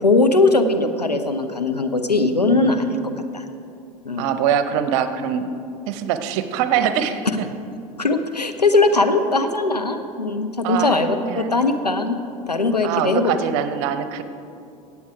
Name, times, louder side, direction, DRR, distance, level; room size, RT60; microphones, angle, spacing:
voice 1, 0.0-3.0 3.3-3.4 4.0-4.3 8.0-12.2 12.5-13.3, left 3 dB, 90° left, 7 dB, 0.7 m, -20 dB
voice 2, 2.4-2.9 4.2-5.5 5.9-7.5 10.6-11.5 12.8-14.2, right 8 dB, 50° right, 10 dB, 0.8 m, -24 dB
17.5 x 7.2 x 4.8 m, 2.6 s
figure-of-eight pair, 80°, 20 cm